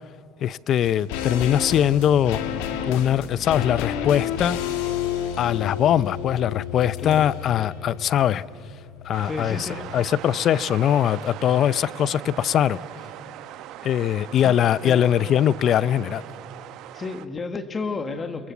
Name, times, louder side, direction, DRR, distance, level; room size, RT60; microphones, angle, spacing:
voice 1, 0.4-2.4 2.8-4.6 5.4-8.4 9.0-12.8 13.8-16.2, left 10 dB, 50° left, 20 dB, 0.5 m, -21 dB
sound 1, 0.8-10.2 10.4-10.5, left 9 dB, 85° left, 1.8 m, -31 dB
sound 2, 9.1-17.3, right 13 dB, 65° right, 1.0 m, -40 dB
voice 2, 9.2-9.8 14.4-14.6 14.8-15.1 16.9-18.5, left 4 dB, 30° left, 9 dB, 1.8 m, -31 dB
29.0 x 22.5 x 7.2 m, 2.6 s
supercardioid pair, 110°, 0 cm